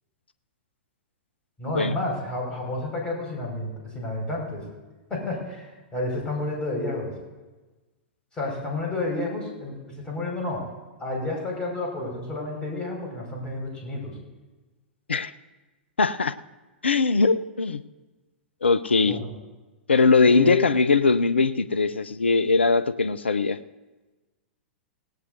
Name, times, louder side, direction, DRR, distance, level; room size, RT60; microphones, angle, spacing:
voice 1, 1.6-4.6 5.1-7.1 8.3-10.6 11.0-14.2 19.1-19.3 20.3-20.6, left 2 dB, 15° left, -2 dB, 5.5 m, -30 dB
voice 2, 16.0-16.3 16.8-17.8 18.6-19.2 19.9-23.6, left 4 dB, 80° left, 15 dB, 0.5 m, -21 dB
18.0 x 17.5 x 2.7 m, 1.2 s
figure-of-eight pair, 100°, 6 cm